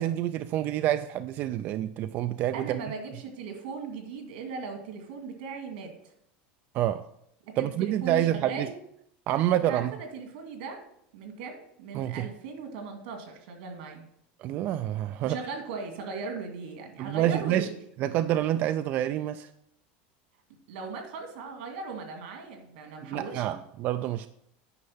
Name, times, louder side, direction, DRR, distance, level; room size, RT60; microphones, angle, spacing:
voice 1, 0.0-2.8 6.7-7.0 7.6-8.7 9.3-9.9 11.9-12.3 14.4-15.4 17.0-17.7 18.0-19.5 23.0-24.3, right 12 dB, 40° right, 0.3 m, -27 dB
voice 2, 2.5-6.1 7.4-8.7 9.7-10.8 11.1-14.0 15.2-17.8 20.7-23.4, right 4 dB, 85° right, 2.3 m, -38 dB
9.5 x 5.5 x 5.6 m
supercardioid pair, 160°, 5 cm